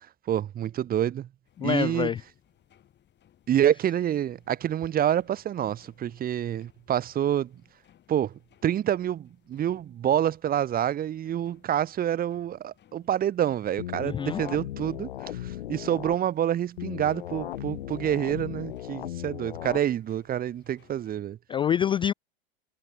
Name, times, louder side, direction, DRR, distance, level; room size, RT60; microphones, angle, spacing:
voice 1, 0.3-1.3 1.6-2.1 3.5-7.5 8.1-8.3 8.6-15.1 15.4-21.4, right 10 dB, 30° right, 1.1 m, -27 dB
sound 1, 1.4-21.2, left 10 dB, 35° left, 7.9 m, -64 dB
voice 2, 1.6-2.2 14.0-14.4 21.5-22.1, left 9 dB, 15° left, 0.3 m, -26 dB
sound 2, 13.8-16.2 16.8-19.8, left 13 dB, 75° left, 1.9 m, -37 dB
hypercardioid pair, 90°, 31 cm